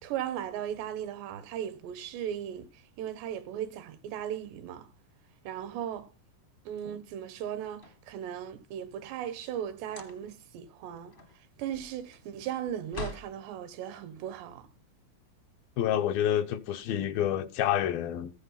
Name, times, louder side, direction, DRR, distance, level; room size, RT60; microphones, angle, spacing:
voice 1, 0.0-2.7 3.0-4.9 5.5-6.1 6.7-11.1 11.6-14.7, right 10 dB, 90° right, 3.4 m, -37 dB
sound 1, 7.4-8.6 9.8-10.5 10.9-13.4, left 3 dB, 40° left, 0.7 m, -44 dB
voice 2, 15.8-18.3, left 10 dB, 75° left, 2.4 m, -28 dB
14.5 x 9.8 x 5.6 m
omnidirectional pair, 4.8 m